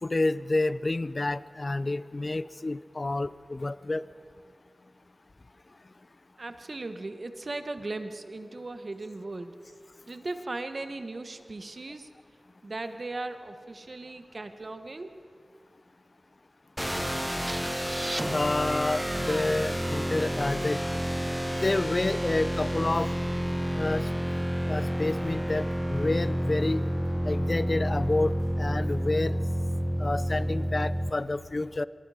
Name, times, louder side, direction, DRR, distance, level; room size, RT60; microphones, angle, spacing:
voice 1, 0.0-4.0 18.2-20.8 21.6-23.1 23.7-24.1 24.7-26.9 27.2-28.3 28.6-29.4 30.0-31.8, left 2 dB, 50° left, 16 dB, 0.6 m, -29 dB
voice 2, 6.4-9.5 10.1-12.1 12.6-15.2, right 2 dB, 60° right, 8 dB, 1.4 m, -37 dB
sound 1, 16.8-31.1, equal, ahead, 0.9 m, -29 dB
sound 2, 17.5-21.2, right 1 dB, 25° right, 0.4 m, -39 dB
25.0 x 22.0 x 5.0 m, 2.2 s
cardioid pair, 45°, 0 cm